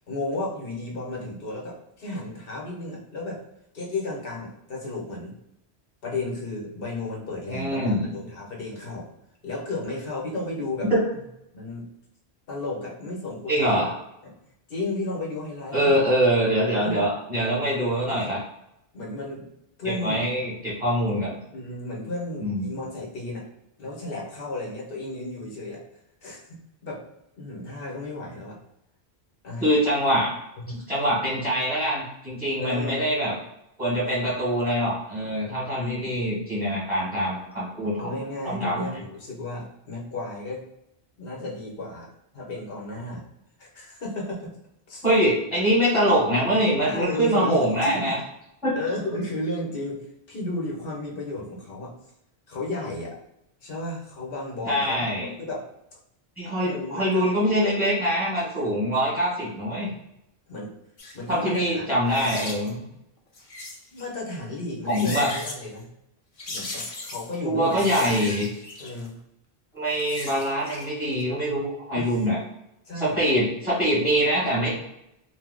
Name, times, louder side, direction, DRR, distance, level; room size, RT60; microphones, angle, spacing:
voice 1, 0.1-3.4 3.7-5.3 6.0-9.1 9.4-10.9 11.5-11.9 12.5-13.8 14.2-14.3 14.7-16.1 16.8-17.1 18.1-18.3 18.9-19.5 19.8-20.2 21.5-23.5 23.8-25.8 26.2-27.0 27.4-28.6 29.4-29.7 30.7-30.8 32.6-33.0 35.8-36.1 38.0-40.6 41.2-43.3 43.6-44.5 44.9-45.0 46.8-48.1 48.7-51.9 52.5-53.2 53.6-55.7 56.6-57.3 60.5-60.7 61.1-62.3 63.9-65.9 66.5-68.5 68.8-69.2 71.9-72.2 72.9-73.2, left 2 dB, 60° left, -2 dB, 1.0 m, -33 dB
voice 2, 7.5-8.1 10.9-11.0 13.5-13.9 15.7-18.4 19.8-21.4 22.4-22.6 29.6-30.3 30.7-33.3 33.8-38.1 38.4-38.9 45.0-48.2 48.6-48.7 54.7-55.3 56.4-59.9 61.3-62.8 64.9-65.3 67.4-68.4 69.7-72.4 72.9-74.7, equal, ahead, -9 dB, 1.0 m, -24 dB
sound 1, 61.0-61.1 62.1-62.7 63.3-64.0 64.7-65.6 66.4-67.3 67.7-69.1 69.8-70.9 71.2-71.3, left 2 dB, 40° left, 0.5 m, -36 dB
2.6 x 2.0 x 3.7 m, 0.84 s
omnidirectional pair, 1.1 m